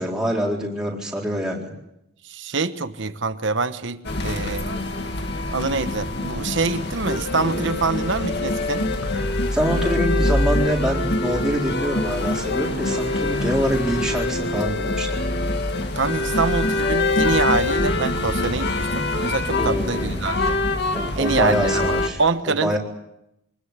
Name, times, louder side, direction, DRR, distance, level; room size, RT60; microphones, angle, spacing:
voice 1, 0.0-1.7 9.2-15.2 19.6-20.2 20.9-22.2 22.5-22.8, equal, 5° right, -3 dB, 4.1 m, -25 dB
voice 2, 2.2-4.7 5.5-8.9 15.9-20.6 21.2-22.8, right 4 dB, 55° right, 11 dB, 1.1 m, -25 dB
sound 1, 4.0-22.1, left 2 dB, 50° left, 2.1 m, -24 dB
24.5 x 19.5 x 8.2 m, 0.83 s
head